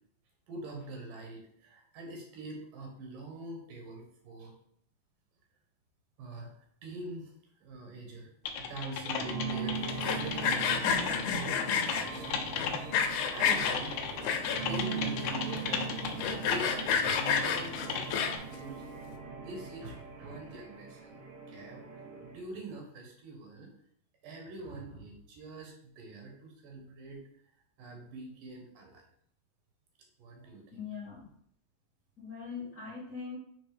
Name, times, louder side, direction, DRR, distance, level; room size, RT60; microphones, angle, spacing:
voice 1, 0.5-4.5 6.2-7.3 7.6-8.3 8.6-13.1 13.3-14.0 14.3-15.9 16.3-18.9 19.4-21.2 21.5-21.8 22.2-23.7 24.2-27.2 27.8-29.0 30.2-30.9, right 2 dB, 75° right, 1 dB, 3.0 m, -44 dB
Typing, 8.5-18.4, left 6 dB, 75° left, 2.2 m, -36 dB
sound 1, 9.1-22.4, right 5 dB, 60° right, 1.6 m, -40 dB
Sawing, 9.9-12.1 12.6-13.8 14.2-14.8 15.3-15.4 15.6-15.7 16.1-18.6, left 7 dB, 90° left, 2.5 m, -29 dB
voice 2, 30.7-31.3 32.2-33.4, left 6 dB, 30° left, -7 dB, 2.3 m, -41 dB
6.7 x 3.7 x 4.9 m, 0.65 s
omnidirectional pair, 4.0 m